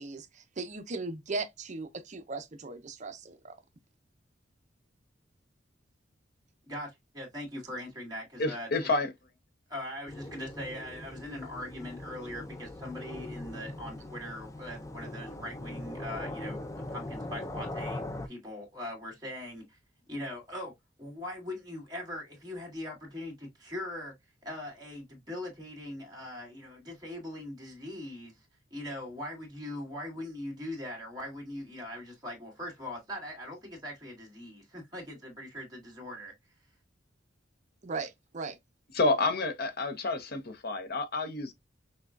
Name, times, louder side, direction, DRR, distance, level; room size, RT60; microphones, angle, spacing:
voice 1, 0.0-3.6 37.8-38.6, right 3 dB, 40° right, 0.6 m, -38 dB
voice 2, 6.7-8.7 9.7-19.8 20.1-20.7 21.0-24.1 24.4-28.4 28.7-36.3, left 1 dB, 20° right, 1.9 m, -41 dB
voice 3, 8.4-9.1 38.9-41.5, left 2 dB, 55° left, 0.8 m, -29 dB
sound 1, 10.1-18.3, left 1 dB, 15° left, 0.4 m, -40 dB
6.0 x 2.3 x 2.5 m
head